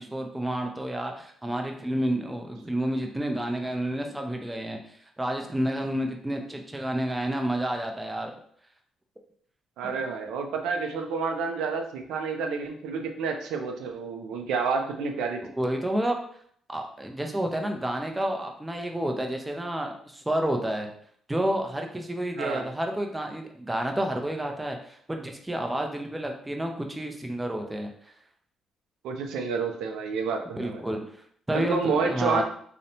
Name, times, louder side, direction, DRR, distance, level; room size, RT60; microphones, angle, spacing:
voice 1, 0.0-8.3 9.8-10.0 15.4-16.2 16.7-20.9 21.3-28.1 30.5-32.4, right 1 dB, 10° right, 3 dB, 0.4 m, -30 dB
voice 2, 9.8-15.4 22.3-22.7 29.0-30.8 31.5-32.4, right 5 dB, 85° right, 3 dB, 0.3 m, -29 dB
2.7 x 2.1 x 2.6 m, 0.62 s
cardioid pair, 90°, 0 cm